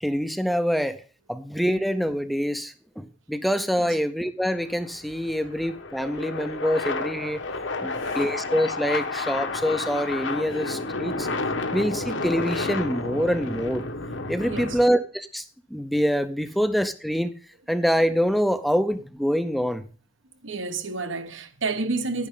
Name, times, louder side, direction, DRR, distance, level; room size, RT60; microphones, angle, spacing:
voice 1, 0.0-1.0 1.3-7.4 7.8-11.3 11.7-13.8 14.3-15.4 15.7-17.3 17.7-19.8, equal, ahead, 0.5 m, -25 dB
sound 1, 4.4-14.8, left 3 dB, 70° left, 1.3 m, -31 dB
voice 2, 7.8-8.2 14.5-14.8 20.4-22.3, right 3 dB, 75° right, 1.2 m, -30 dB
11.0 x 10.0 x 3.7 m
head